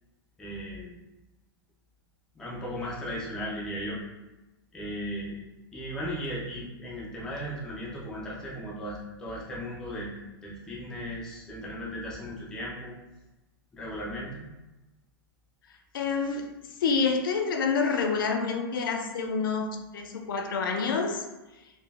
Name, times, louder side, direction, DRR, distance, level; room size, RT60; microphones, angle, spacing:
voice 1, 0.4-1.0 2.4-4.0 4.7-5.4 5.7-10.2 10.4-13.0 13.7-14.5, equal, 5° left, -5 dB, 0.4 m, -36 dB
voice 2, 15.9-16.5 16.8-19.7 19.9-21.3, left 5 dB, 60° left, 4 dB, 0.5 m, -27 dB
3.9 x 2.1 x 3.4 m, 1.1 s
supercardioid pair, 175°, 13 cm